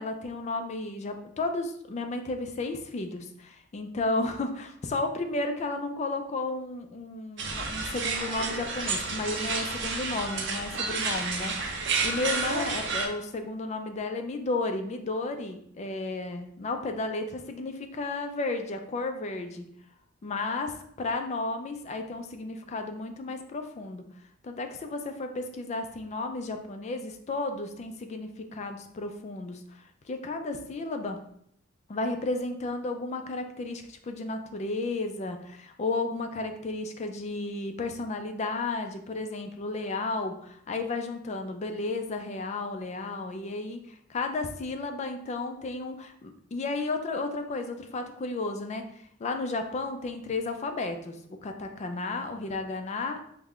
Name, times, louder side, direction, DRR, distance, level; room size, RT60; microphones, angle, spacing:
voice 1, 0.0-19.7 20.2-24.0 24.4-31.2 31.9-48.9 49.2-53.2, left 3 dB, 35° left, 6 dB, 0.3 m, -33 dB
sound 1, 7.4-13.1, right 4 dB, 60° right, 0.5 m, -31 dB
3.4 x 2.1 x 3.6 m, 0.69 s
head